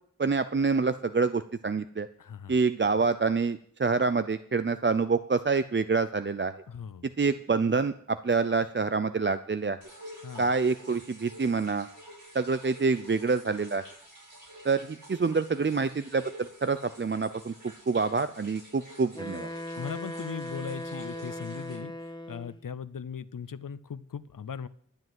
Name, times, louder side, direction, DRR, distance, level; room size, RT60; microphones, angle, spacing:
voice 1, 0.2-2.1 2.5-6.5 7.2-9.8 10.4-11.9 12.3-13.8 14.6-17.5 17.9-19.5, right 4 dB, 35° right, 12 dB, 0.5 m, -27 dB
voice 2, 2.2-2.6 6.7-7.1 10.2-10.5 19.8-21.9 22.3-24.7, left 7 dB, 85° left, 16 dB, 0.6 m, -38 dB
sound 1, 9.8-21.8, equal, 75° right, 6.4 m, -49 dB
Wind instrument woodwind instrument, 19.1-22.6, left 1 dB, 15° left, 1.4 m, -38 dB
12.0 x 7.9 x 7.6 m, 0.62 s
wide cardioid pair, 50°, 31 cm